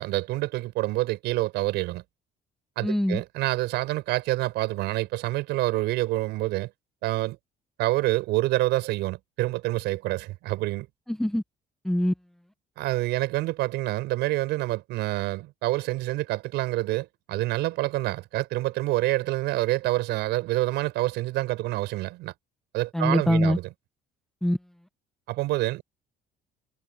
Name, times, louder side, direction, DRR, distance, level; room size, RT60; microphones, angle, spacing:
voice 1, 0.0-2.0 2.8-6.7 7.0-7.4 7.8-10.9 12.8-22.3 22.7-23.6 25.3-25.8, right 18 dB, 80° right, 5.3 m, -27 dB
voice 2, 2.8-3.2 11.1-11.4 11.8-12.1 22.9-23.6 24.4-24.6, left 1 dB, ahead, 0.8 m, -23 dB
cardioid pair, 175°, 17 cm